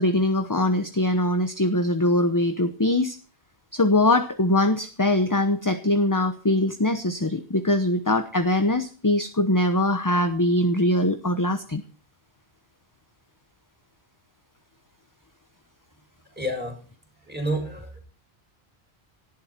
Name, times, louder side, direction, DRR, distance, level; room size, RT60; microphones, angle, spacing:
voice 1, 0.0-3.2 3.7-11.8, left 1 dB, 20° left, 10 dB, 1.0 m, -22 dB
voice 2, 16.3-16.8 17.3-18.0, right 1 dB, 10° right, 1 dB, 7.4 m, -29 dB
18.5 x 13.5 x 4.4 m, 0.38 s
omnidirectional pair, 1.1 m